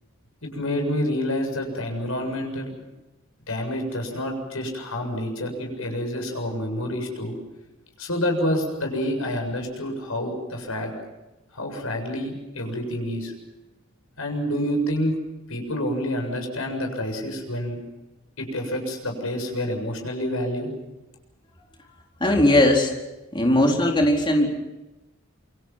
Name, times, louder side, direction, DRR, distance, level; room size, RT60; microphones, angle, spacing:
voice 1, 0.4-2.9 3.5-7.4 8.0-10.9 11.5-13.3 14.2-15.2 15.5-17.8 18.4-20.7, left 1 dB, 90° left, 3 dB, 7.2 m, -28 dB
voice 2, 22.2-22.9 23.3-24.5, left 1 dB, 25° left, 0 dB, 4.3 m, -18 dB
28.0 x 24.5 x 5.9 m, 1.0 s
head